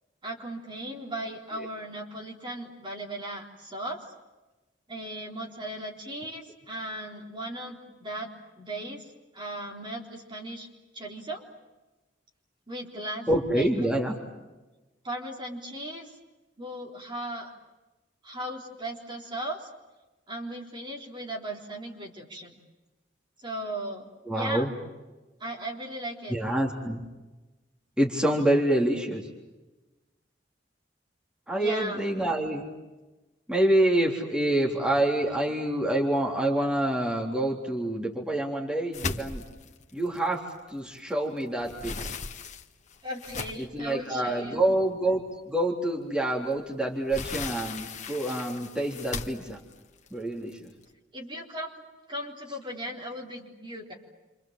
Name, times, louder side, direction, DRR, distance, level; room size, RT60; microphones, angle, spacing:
voice 1, 0.2-4.0 4.9-8.3 8.6-10.7 10.9-11.5 12.7-13.7 15.0-16.2 16.6-17.5 18.2-19.7 20.3-22.5 23.4-24.7 25.4-26.4 31.5-32.1 43.0-44.7 51.1-51.7 52.1-53.9, right 1 dB, 25° right, 0 dB, 3.9 m, -37 dB
voice 2, 13.3-14.1 24.3-24.7 26.3-27.0 28.0-29.2 31.5-32.6 33.5-39.4 39.9-40.4 40.7-42.1 43.6-45.2 45.5-49.6 50.1-50.7, right 1 dB, 5° right, -2 dB, 3.6 m, -27 dB
sound 1, 38.9-41.1 41.4-43.8 44.5-44.6 45.0-45.1 46.5-50.8, left 4 dB, 45° left, 1.6 m, -38 dB
29.0 x 26.5 x 7.5 m, 1.1 s
head